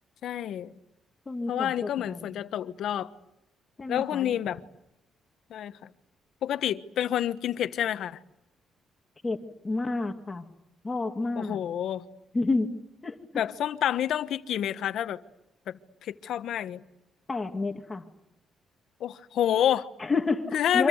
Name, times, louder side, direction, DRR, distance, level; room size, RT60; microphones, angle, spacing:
voice 1, 0.2-0.7 1.5-3.1 3.9-4.6 5.5-5.9 6.4-8.2 11.4-12.0 13.3-15.2 15.7-16.8 19.0-19.9 20.5-20.9, left 10 dB, 75° left, 1.3 m, -28 dB
voice 2, 1.3-2.4 3.8-4.4 9.2-9.4 9.6-10.5 10.8-11.6 12.3-13.4 17.3-18.0 20.0-20.9, left 3 dB, 25° left, 2.3 m, -30 dB
28.0 x 25.5 x 8.1 m
cardioid pair, 90°, 0 cm